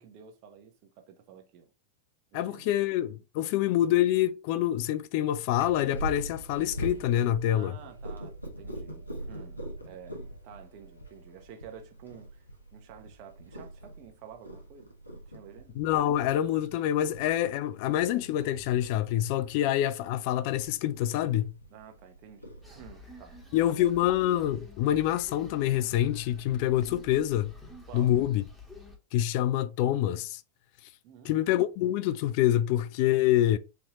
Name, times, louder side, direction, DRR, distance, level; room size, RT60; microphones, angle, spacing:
voice 1, 0.0-1.7 2.3-2.7 7.5-12.4 12.7-14.9 15.3-15.8 19.5-19.6 21.7-23.8 27.9-28.2 31.0-31.5, right 8 dB, 45° right, 0.9 m, -50 dB
voice 2, 2.3-7.7 15.8-21.5 23.5-27.5 27.9-28.4 29.1-30.4 31.2-33.6, left 12 dB, 45° left, 0.4 m, -26 dB
Purr, 5.5-23.5, right 1 dB, 90° left, 0.9 m, -43 dB
sound 1, 22.6-29.0, left 2 dB, ahead, 1.2 m, -49 dB
4.4 x 2.8 x 2.9 m
figure-of-eight pair, 95°, 0 cm